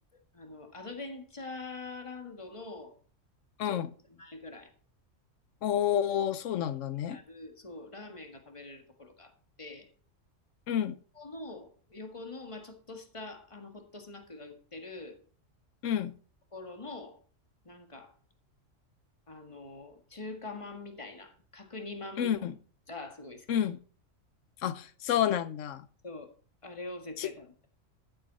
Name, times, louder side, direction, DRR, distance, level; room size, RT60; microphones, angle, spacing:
voice 1, 0.3-2.9 3.6-3.8 4.1-4.7 7.1-9.3 9.6-9.9 11.2-15.2 16.5-17.2 17.7-18.1 19.3-22.5 22.9-23.5 26.0-26.3 26.6-27.7, left 3 dB, 25° left, 1.8 m, -44 dB
voice 2, 3.6-3.9 5.6-7.2 10.7-11.0 15.8-16.1 22.2-22.6 23.5-23.8 24.6-25.9 27.2-27.3, left 10 dB, 75° left, 1.1 m, -29 dB
14.0 x 8.2 x 4.1 m
omnidirectional pair, 1.3 m